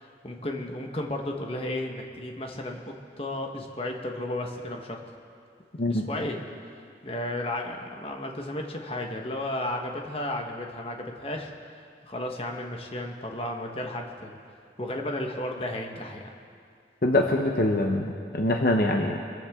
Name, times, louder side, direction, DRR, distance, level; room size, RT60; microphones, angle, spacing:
voice 1, 0.0-2.8 3.2-5.0 5.9-6.4 7.0-11.5 12.0-14.4 14.8-16.3, left 1 dB, 30° left, 2 dB, 1.3 m, -33 dB
voice 2, 17.0-19.2, left 1 dB, 55° left, 2 dB, 0.9 m, -24 dB
25.5 x 14.5 x 3.7 m, 2.3 s
head